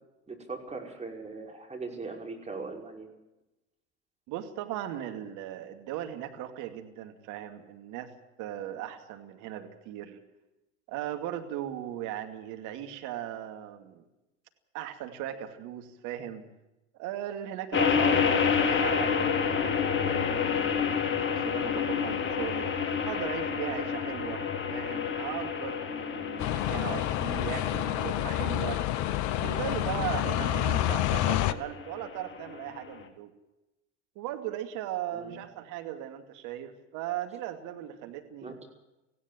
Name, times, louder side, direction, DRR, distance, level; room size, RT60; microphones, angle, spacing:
voice 1, 0.3-3.1 18.2-18.3 30.7-30.9 35.1-35.4 38.4-38.6, right 4 dB, 20° right, 1 dB, 5.5 m, -40 dB
voice 2, 4.3-8.1 8.4-10.2 10.9-14.0 14.7-16.4 16.9-22.7 23.1-28.8 29.4-33.3 34.2-38.6, right 12 dB, 55° right, 5 dB, 2.5 m, -38 dB
sound 1, 17.7-33.0, left 7 dB, 30° left, 3.0 m, -30 dB
sound 2, 26.4-31.5, left 13 dB, 50° left, 1.1 m, -28 dB
18.5 x 16.5 x 9.0 m, 0.98 s
hypercardioid pair, 75°, 36 cm